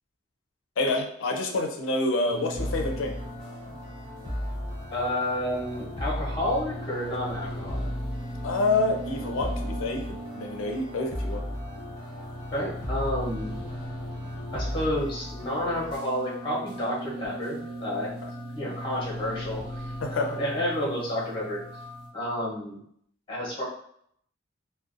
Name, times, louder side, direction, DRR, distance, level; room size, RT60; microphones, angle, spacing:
voice 1, 0.8-3.1 8.4-11.4 20.0-20.3, left 2 dB, 85° left, 3 dB, 0.4 m, -27 dB
sound 1, 2.3-22.1, equal, 25° right, 0.8 m, -39 dB
sound 2, 2.5-16.0, equal, 80° right, 0.9 m, -36 dB
voice 2, 4.9-7.9 12.5-13.5 14.5-18.1 18.5-21.6 22.1-22.8 23.3-23.6, left 1 dB, 25° left, -5 dB, 0.8 m, -30 dB
2.5 x 2.1 x 2.5 m, 0.67 s
head